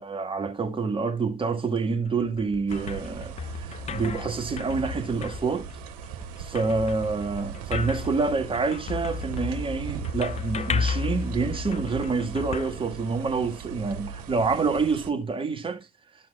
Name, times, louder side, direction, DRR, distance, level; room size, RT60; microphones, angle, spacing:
voice 1, 0.0-5.7 6.4-15.9, right 4 dB, 25° right, 1.7 m, -27 dB
sound 1, 2.0-13.5, left 6 dB, 35° left, 0.7 m, -34 dB
sound 2, 2.7-15.1, right 8 dB, 75° right, 0.9 m, -39 dB
13.0 x 5.8 x 2.3 m
hypercardioid pair, 55°, 20 cm